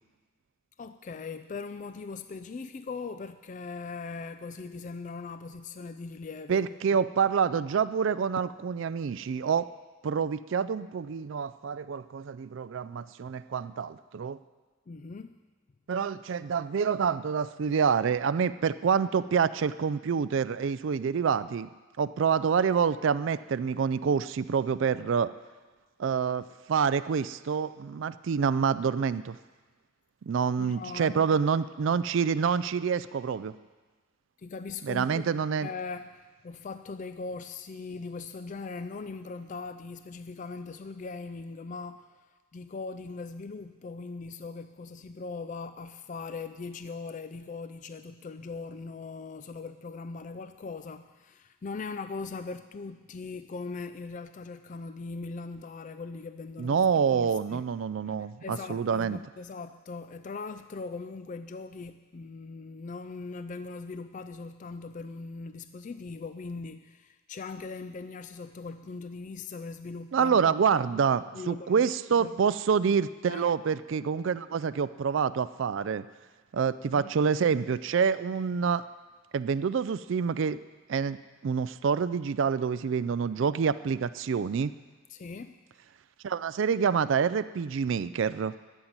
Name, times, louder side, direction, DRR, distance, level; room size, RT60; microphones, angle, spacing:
voice 1, 0.8-7.0 14.9-15.4 30.6-31.3 34.4-35.2 35.6-57.7 58.0-58.1 58.4-70.5 70.9-71.0 71.3-72.4 73.3-73.4 76.9-77.1 85.1-85.6, left 4 dB, 35° left, 11 dB, 0.3 m, -40 dB
voice 2, 6.5-9.7 10.0-14.4 15.9-21.7 22.0-25.3 26.0-29.4 30.3-33.5 34.8-35.7 56.6-59.2 70.1-76.0 76.5-78.8 79.3-80.6 80.9-81.2 81.4-84.7 86.2-88.5, right 6 dB, 60° right, 15 dB, 0.3 m, -27 dB
13.0 x 7.4 x 9.5 m, 1.3 s
head